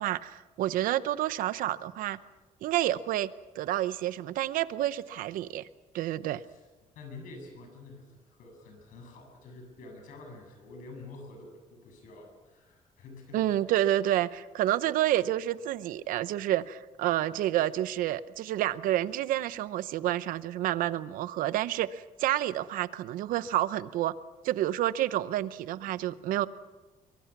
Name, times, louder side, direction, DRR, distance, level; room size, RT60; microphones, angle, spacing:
voice 1, 0.0-2.2 2.6-3.3 3.5-5.7 5.9-6.4 13.3-24.1 24.4-26.5, right 13 dB, 85° right, 15 dB, 0.8 m, -29 dB
voice 2, 6.9-13.6, left 2 dB, 75° left, 3 dB, 7.8 m, -48 dB
24.0 x 23.5 x 6.0 m, 1.2 s
cardioid pair, 170°, 14 cm